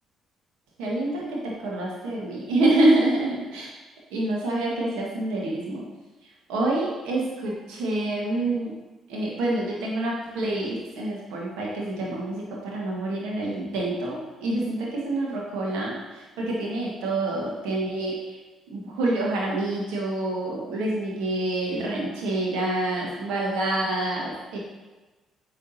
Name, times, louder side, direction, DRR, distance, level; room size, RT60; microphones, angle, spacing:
voice 1, 0.8-3.7 4.1-5.8 6.5-8.7 9.1-18.4 18.7-24.6, right 2 dB, 75° right, -3 dB, 1.6 m, -27 dB
8.6 x 5.0 x 2.8 m, 1.2 s
hypercardioid pair, 50°, 0 cm